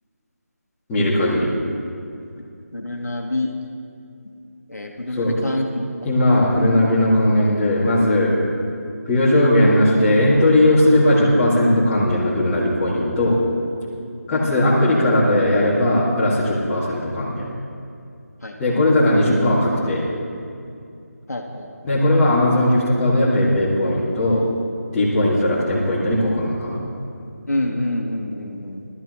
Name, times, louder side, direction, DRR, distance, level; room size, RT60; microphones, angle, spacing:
voice 1, 0.9-1.5 5.1-5.4 6.0-8.3 9.0-13.4 14.3-17.5 18.6-20.1 21.8-24.4 24.9-26.8, left 1 dB, 15° left, -9 dB, 2.4 m, -18 dB
voice 2, 2.7-3.5 4.7-5.8 14.3-14.6 18.4-18.6 21.3-21.9 27.5-28.8, left 1 dB, 75° left, 1 dB, 1.6 m, -27 dB
19.5 x 13.0 x 3.2 m, 2.5 s
figure-of-eight pair, 160°, 9 cm